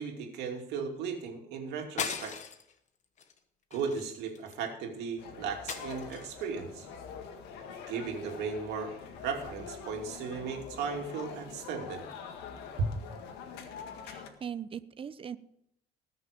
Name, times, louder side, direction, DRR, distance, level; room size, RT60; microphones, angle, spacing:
voice 1, 0.0-2.4 3.7-6.9 7.9-8.9 9.2-12.0 12.8-12.9, right 5 dB, 85° right, 2 dB, 2.7 m, -36 dB
sound 1, 2.0-2.7 3.2-3.4 3.7-4.7 5.7-6.4, left 6 dB, 45° left, 1.3 m, -38 dB
sound 2, 5.2-14.3, left 6 dB, 90° left, 1.9 m, -45 dB
voice 2, 14.0-15.4, right 8 dB, 30° right, 14 dB, 0.7 m, -40 dB
19.5 x 6.5 x 5.2 m, 0.75 s
cardioid pair, 110°, 17 cm